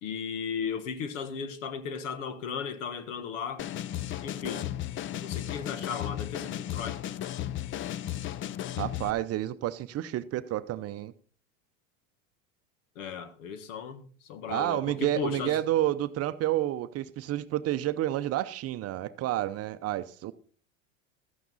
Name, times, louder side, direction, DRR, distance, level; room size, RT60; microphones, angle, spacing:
voice 1, 0.0-3.6 4.2-4.7 5.2-7.0 12.9-15.6, left 6 dB, 75° left, 1.5 m, -36 dB
sound 1, 3.6-9.1, left 12 dB, 30° left, 0.5 m, -35 dB
voice 2, 8.8-11.1 14.5-20.3, right 14 dB, 40° right, 0.6 m, -30 dB
13.0 x 9.1 x 4.0 m
hypercardioid pair, 95°, 38 cm